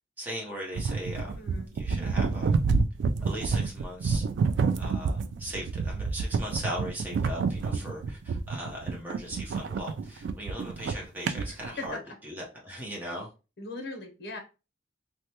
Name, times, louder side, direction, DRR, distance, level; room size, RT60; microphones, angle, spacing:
voice 1, 0.2-1.3 1.7-2.5 3.2-4.2 4.8-12.0 12.3-13.3, equal, 10° right, 0.8 m, -38 dB
sound 1, 0.7-11.9, right 4 dB, 75° right, 0.3 m, -28 dB
voice 2, 1.4-1.7 7.9-8.1 11.5-12.2 13.6-14.4, left 3 dB, 60° left, 0.7 m, -40 dB
3.2 x 2.1 x 2.8 m
head